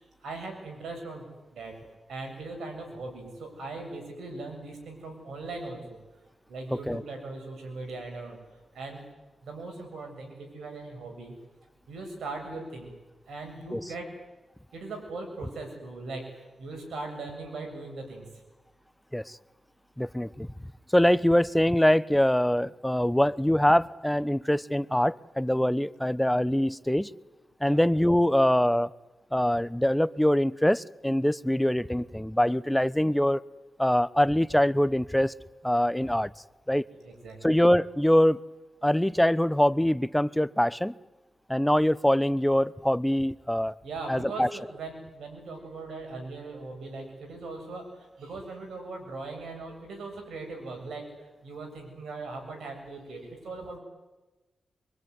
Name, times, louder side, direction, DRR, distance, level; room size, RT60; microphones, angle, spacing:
voice 1, 0.2-1.2 1.5-1.7 2.1-6.0 6.5-8.4 8.7-9.0 9.4-11.4 11.9-12.9 13.3-14.1 14.7-18.3 27.6-27.8 37.0-37.6 43.8-53.8, right 3 dB, 80° right, 4 dB, 7.2 m, -39 dB
voice 2, 6.7-7.0 13.7-13.8 19.1-19.4 20.0-20.5 20.9-27.1 27.6-28.9 29.3-33.4 33.8-35.3 35.6-36.3 36.7-36.8 37.4-38.4 38.8-40.9 41.5-43.7 44.1-44.5, left 1 dB, 5° left, 18 dB, 0.9 m, -24 dB
24.0 x 23.5 x 9.6 m, 1.1 s
cardioid pair, 50°, 0 cm